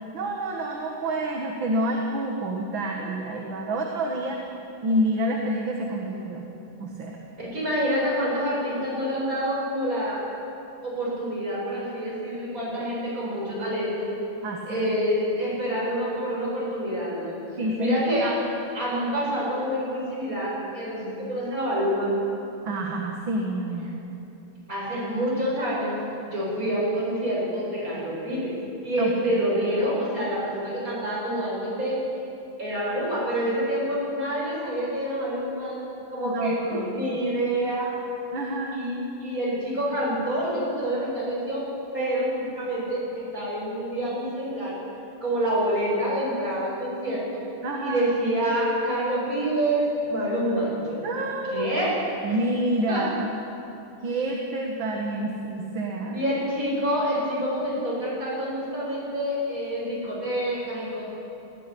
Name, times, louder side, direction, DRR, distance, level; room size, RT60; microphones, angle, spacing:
voice 1, 0.1-4.4 4.8-6.5 6.8-7.2 14.4-14.9 17.6-18.0 22.7-23.9 29.0-29.4 36.2-37.2 38.3-38.8 47.6-48.0 51.0-51.8 52.2-53.2 54.0-56.2, right 1 dB, 65° right, 0 dB, 2.4 m, -28 dB
voice 2, 7.4-10.2 10.8-14.1 14.7-17.4 17.8-18.4 18.7-22.2 24.7-28.5 28.8-32.0 32.6-35.8 36.1-37.9 38.7-41.7 41.9-44.8 45.2-47.4 47.8-51.0 51.5-52.0 52.9-53.1 56.1-61.1, equal, 40° right, -6 dB, 7.8 m, -27 dB
18.5 x 16.0 x 10.0 m, 2.9 s
omnidirectional pair, 2.3 m